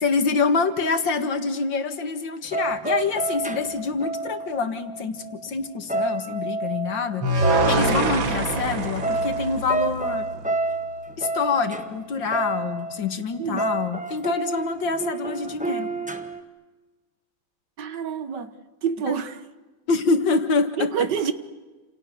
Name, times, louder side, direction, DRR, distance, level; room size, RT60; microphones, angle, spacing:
voice 1, 0.0-7.2 7.7-10.2 11.2-15.9 19.9-21.1, left 4 dB, 70° left, 2.5 m, -26 dB
sound 1, 2.5-5.4 5.7-13.1 13.3-16.4, right 2 dB, 5° right, 1.3 m, -29 dB
sound 2, 7.2-10.4, right 2 dB, 85° right, 2.9 m, -24 dB
voice 2, 17.8-18.5 18.8-19.4 20.8-21.3, right 7 dB, 65° right, 1.9 m, -27 dB
29.5 x 28.5 x 6.9 m
omnidirectional pair, 2.1 m